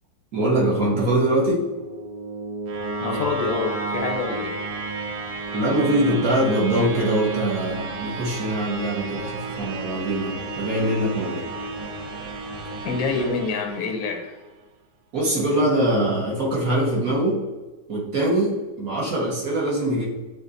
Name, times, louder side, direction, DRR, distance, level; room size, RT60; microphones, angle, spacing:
voice 1, 0.3-1.7 5.5-11.5 15.1-17.4 17.9-20.1, right 1 dB, 55° right, -4 dB, 1.4 m, -23 dB
sound 1, 1.3-14.4, right 3 dB, 85° right, 1.3 m, -32 dB
voice 2, 3.0-4.5 12.8-14.3, left 4 dB, 90° left, 3 dB, 1.3 m, -26 dB
6.5 x 2.6 x 2.5 m, 1.2 s
omnidirectional pair, 2.0 m